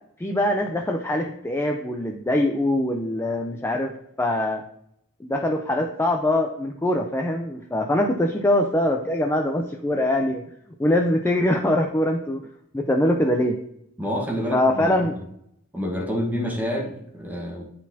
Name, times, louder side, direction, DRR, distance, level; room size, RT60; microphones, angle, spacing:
voice 1, 0.2-3.9 4.2-4.6 5.2-10.4 10.8-12.4 12.7-13.6 14.5-15.1, left 1 dB, 10° left, 2 dB, 0.4 m, -23 dB
voice 2, 14.0-15.2 15.7-17.6, equal, 10° right, 1 dB, 1.2 m, -28 dB
9.5 x 4.1 x 2.7 m, 0.73 s
head